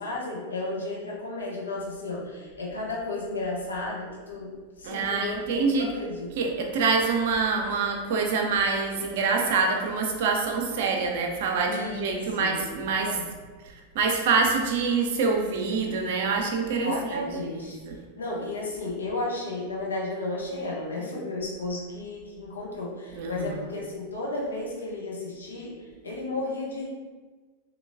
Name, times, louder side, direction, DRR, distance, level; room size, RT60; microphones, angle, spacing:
voice 1, 0.0-6.5 11.6-12.6 13.0-13.3 16.5-17.8 18.2-26.9, left 2 dB, 70° left, -4 dB, 0.8 m, -33 dB
voice 2, 4.8-5.9 6.4-13.2 13.6-18.0 23.1-23.6, right 4 dB, 50° right, 2 dB, 0.6 m, -26 dB
3.7 x 2.9 x 2.6 m, 1.4 s
figure-of-eight pair, 90°, 0 cm